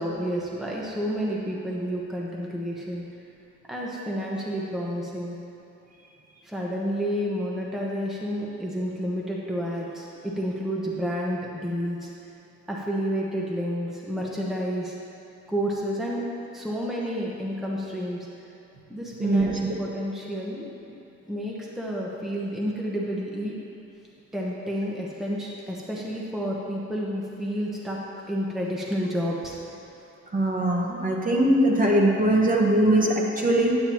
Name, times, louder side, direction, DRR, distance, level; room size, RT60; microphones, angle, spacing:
voice 1, 0.0-3.0 3.7-5.4 6.4-12.1 12.7-15.0 15.5-18.3 18.9-20.6 21.3-23.5 24.3-28.0 28.3-29.6, equal, ahead, -4 dB, 1.0 m, -30 dB
voice 2, 19.2-19.7 30.3-33.7, right 1 dB, 25° right, -2 dB, 1.2 m, -21 dB
8.8 x 8.7 x 3.0 m, 2.8 s
cardioid pair, 90°, 30 cm